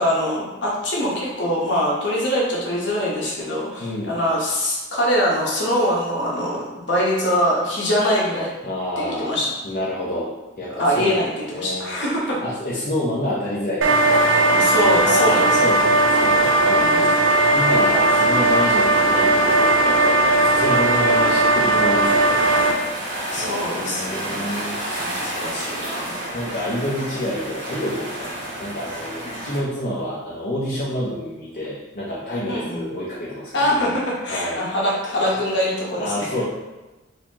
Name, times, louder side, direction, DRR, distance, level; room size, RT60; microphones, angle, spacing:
voice 1, 0.0-8.5 9.0-9.5 10.8-12.4 14.5-15.6 16.7-17.1 23.3-24.5 24.9-26.2 29.2-29.4 32.4-32.9 33.5-36.3, equal, 70° left, -4 dB, 1.0 m, -23 dB
voice 2, 3.8-4.1 8.6-9.4 9.6-11.1 11.5-11.9 12.4-14.4 15.0-16.9 17.5-22.5 23.0-25.1 26.3-33.9 34.3-34.6 35.2-35.4 35.9-36.4, left 1 dB, 45° left, -8 dB, 0.6 m, -28 dB
sound 1, 13.8-22.7, right 2 dB, 85° right, 0.5 m, -17 dB
sound 2, 22.0-29.6, right 1 dB, 70° right, 1.2 m, -31 dB
4.1 x 2.7 x 2.8 m, 1.1 s
head